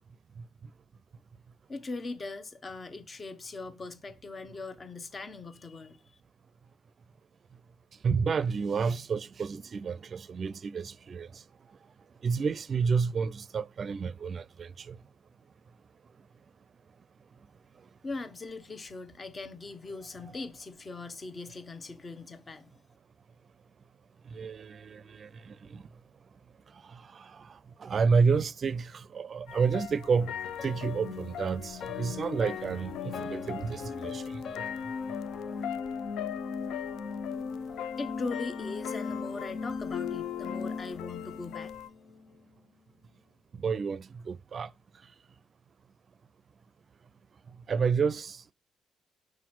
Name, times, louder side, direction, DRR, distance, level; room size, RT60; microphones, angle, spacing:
voice 1, 1.7-6.2 18.0-22.8 38.0-41.7, left 3 dB, 35° left, 1.0 m, -40 dB
voice 2, 8.0-11.4 12.2-15.0 24.3-25.9 26.7-30.3 30.6-34.4 43.6-44.7 47.7-48.4, right 5 dB, 45° right, 0.5 m, -30 dB
sound 1, 29.5-41.9, left 12 dB, 85° left, 0.4 m, -41 dB
sound 2, 30.1-42.4, left 5 dB, 60° left, 0.8 m, -38 dB
5.9 x 4.9 x 6.1 m
cardioid pair, 90°, 0 cm